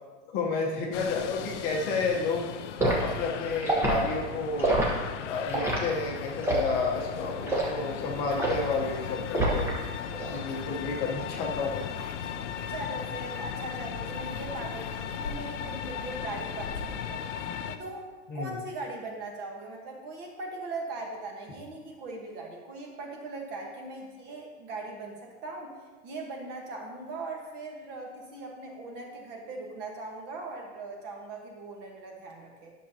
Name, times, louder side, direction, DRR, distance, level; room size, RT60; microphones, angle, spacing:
voice 1, 0.3-2.5 3.0-4.8 5.3-9.7 10.3-11.9 18.3-18.5, left 4 dB, 25° left, -1 dB, 1.0 m, -31 dB
sound 1, 0.9-17.8, left 8 dB, 90° left, 0.6 m, -37 dB
Liquid, 2.8-3.0 3.6-4.0 4.6-4.9 5.5-5.8 6.4-6.7 7.5-7.7 8.4-8.7 9.3-9.8 10.1-10.4, right 2 dB, 5° right, 1.0 m, -26 dB
voice 2, 12.7-17.3 17.7-18.1 18.3-25.8 26.0-32.7, right 3 dB, 30° right, 1 dB, 1.3 m, -40 dB
10.5 x 6.6 x 2.8 m, 1.3 s
supercardioid pair, 160°, 35 cm